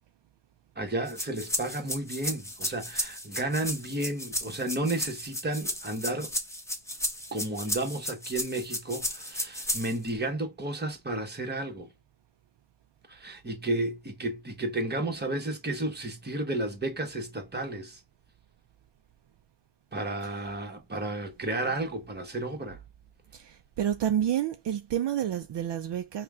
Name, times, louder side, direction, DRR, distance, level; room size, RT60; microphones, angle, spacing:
voice 1, 0.8-6.3 7.3-11.9 13.1-18.0 19.9-22.8, right 2 dB, 20° right, 1.2 m, -32 dB
sound 1, 1.1-10.1, left 1 dB, 5° left, 1.1 m, -34 dB
voice 2, 23.3-26.2, right 10 dB, 60° right, 0.5 m, -29 dB
5.5 x 2.3 x 2.4 m
wide cardioid pair, 140°, 48 cm